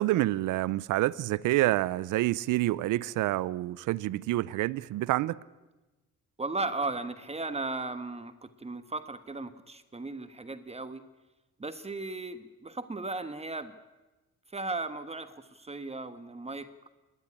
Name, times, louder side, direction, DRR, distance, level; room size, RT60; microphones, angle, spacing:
voice 1, 0.0-5.4, right 16 dB, 85° right, 0.6 m, -28 dB
voice 2, 6.4-11.0 11.6-13.7 14.5-16.7, right 3 dB, 20° right, 1.3 m, -36 dB
28.0 x 11.0 x 9.8 m
cardioid pair, 90°, 30 cm